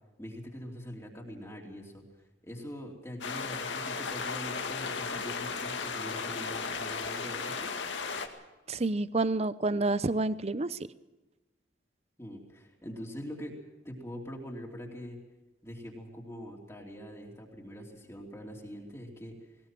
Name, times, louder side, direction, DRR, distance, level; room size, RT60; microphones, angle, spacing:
voice 1, 0.2-7.7 12.2-13.5 13.8-15.2 15.6-19.3, equal, 15° left, -1 dB, 3.0 m, -43 dB
sound 1, 3.2-8.3, left 5 dB, 85° left, 2.1 m, -35 dB
voice 2, 8.7-10.8, right 2 dB, 35° right, 16 dB, 0.6 m, -29 dB
20.0 x 19.0 x 7.6 m, 1.1 s
head